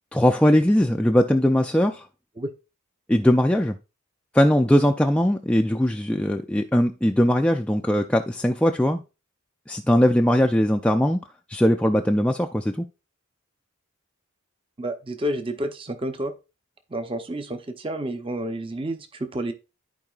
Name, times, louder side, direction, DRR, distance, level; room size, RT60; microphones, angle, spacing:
voice 1, 0.1-2.1 3.1-3.8 4.3-9.0 9.7-12.9, equal, 5° left, 0.3 m, -20 dB
voice 2, 14.8-16.3 16.9-19.5, right 1 dB, 25° right, 0.7 m, -30 dB
13.5 x 4.7 x 2.4 m
head